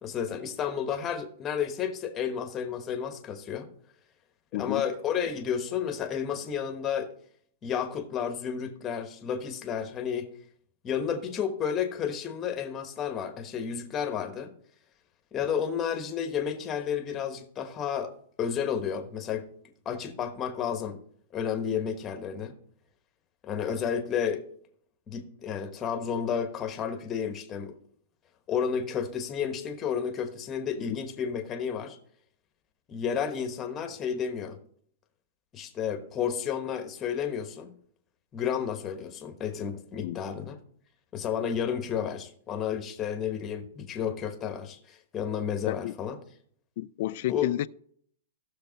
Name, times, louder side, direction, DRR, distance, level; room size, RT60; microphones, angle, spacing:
voice 1, 0.0-3.7 4.6-7.1 7.6-10.3 10.8-14.5 15.3-18.1 18.4-19.5 19.8-21.0 21.3-22.5 23.4-24.4 25.1-27.8 28.5-32.0 32.9-34.6 35.5-37.7 38.3-40.6 41.1-46.2 47.3-47.5, left 7 dB, 20° left, 1.2 m, -31 dB
voice 2, 4.5-4.8 30.8-31.0 40.0-40.2 45.7-46.0 46.8-47.7, left 15 dB, 50° left, 0.4 m, -31 dB
14.5 x 6.7 x 4.0 m
hypercardioid pair, 155°, 0 cm